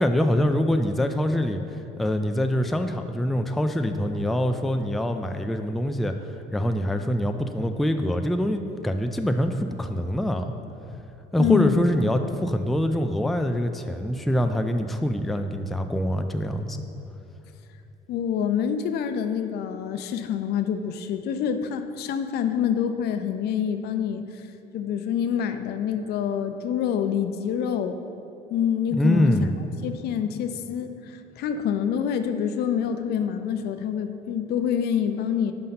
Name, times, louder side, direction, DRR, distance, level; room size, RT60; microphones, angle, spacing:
voice 1, 0.0-1.6 2.0-10.5 11.3-16.8 28.9-29.6, equal, ahead, 6 dB, 0.3 m, -24 dB
voice 2, 11.4-11.8 18.1-24.4 24.7-28.0 28.5-29.5 29.8-35.5, left 8 dB, 70° left, 8 dB, 0.5 m, -26 dB
5.5 x 5.2 x 5.8 m, 2.8 s
cardioid pair, 110°, 17 cm